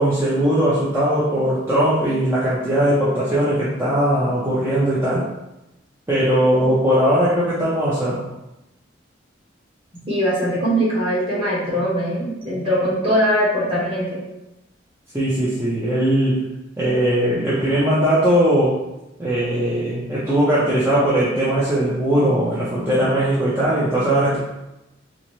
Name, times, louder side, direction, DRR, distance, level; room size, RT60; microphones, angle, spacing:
voice 1, 0.0-5.2 6.1-8.2 15.1-16.4 16.8-18.8 19.2-24.4, right 1 dB, 15° right, -10 dB, 0.6 m, -19 dB
voice 2, 10.1-14.2, equal, 30° right, -7 dB, 1.2 m, -21 dB
3.8 x 2.1 x 3.0 m, 0.94 s
head